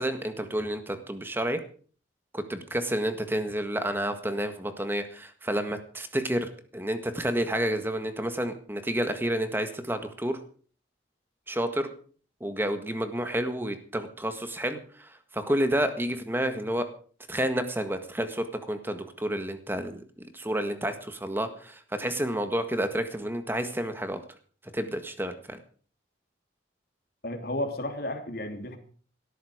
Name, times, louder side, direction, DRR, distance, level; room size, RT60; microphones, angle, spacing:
voice 1, 0.0-1.6 2.3-10.4 11.5-11.9 12.4-16.9 17.3-24.2 24.7-25.6, right 1 dB, 10° right, 8 dB, 1.7 m, -30 dB
voice 2, 27.2-28.8, left 1 dB, 50° left, 5 dB, 2.8 m, -32 dB
18.0 x 13.5 x 5.1 m, 0.44 s
head